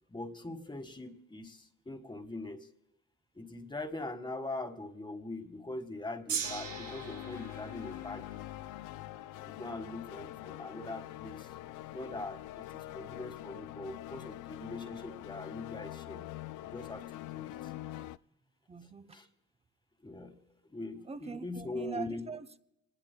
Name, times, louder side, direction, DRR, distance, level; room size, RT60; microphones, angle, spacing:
voice 1, 0.1-2.7 3.3-8.4 9.4-11.5 11.9-16.3 16.6-17.7 19.1-19.3 20.0-22.3, left 2 dB, 15° left, 1.6 m, -42 dB
Gong, 6.3-12.6 13.4-13.5, right 7 dB, 85° right, 2.1 m, -44 dB
sound 1, 6.4-18.2, left 15 dB, 85° left, 0.5 m, -44 dB
voice 2, 18.7-19.2 21.0-22.6, right 5 dB, 20° right, 0.8 m, -42 dB
25.5 x 20.0 x 2.2 m
cardioid pair, 90°, 30 cm